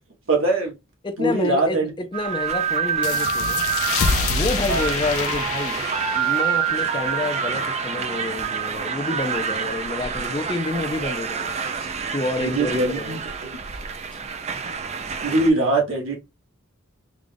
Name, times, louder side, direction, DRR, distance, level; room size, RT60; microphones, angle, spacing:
voice 1, 0.3-0.7 1.2-1.9 4.7-4.8 12.4-13.6 15.2-16.2, right 2 dB, 70° right, 1.6 m, -22 dB
voice 2, 1.0-3.6 4.3-5.8 6.1-13.2, left 2 dB, 20° left, 0.5 m, -28 dB
sound 1, 2.1-15.5, right 6 dB, 30° right, 0.4 m, -27 dB
sound 2, 3.0-8.3, left 5 dB, 90° left, 0.5 m, -28 dB
3.7 x 2.3 x 3.4 m
head